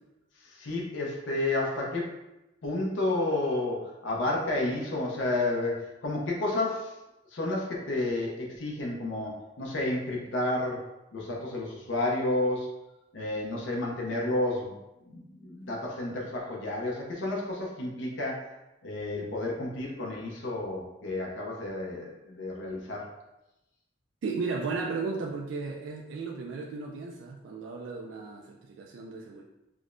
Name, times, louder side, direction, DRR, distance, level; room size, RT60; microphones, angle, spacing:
voice 1, 0.4-2.1 2.6-7.0 7.3-10.8 11.1-12.8 13.1-14.7 15.1-18.5 18.8-23.0, left 2 dB, 85° left, -2 dB, 0.6 m, -31 dB
voice 2, 24.2-29.4, right 4 dB, 75° right, 0 dB, 0.3 m, -35 dB
4.9 x 2.1 x 2.5 m, 0.95 s
head